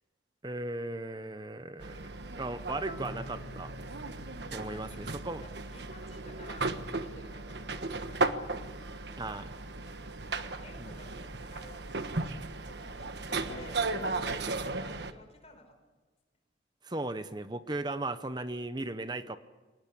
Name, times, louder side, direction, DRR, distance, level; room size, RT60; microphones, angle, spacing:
voice 1, 0.4-3.7 4.5-5.4 9.2-9.4 10.8-10.9 16.8-19.4, right 2 dB, 20° right, 11 dB, 0.8 m, -37 dB
sound 1, 1.8-15.1, right 3 dB, 65° right, 1.3 m, -36 dB
Marimba xylophone, 2.9-6.8, left 2 dB, 60° left, 2.2 m, -51 dB
voice 2, 4.6-5.1 5.4-8.3 9.1-9.7 10.0-11.8 12.7-15.8, left 1 dB, 35° left, 6 dB, 4.9 m, -54 dB
sound 2, 13.5-14.1, left 4 dB, 85° left, 1.8 m, -43 dB
24.0 x 19.5 x 8.5 m, 1.3 s
head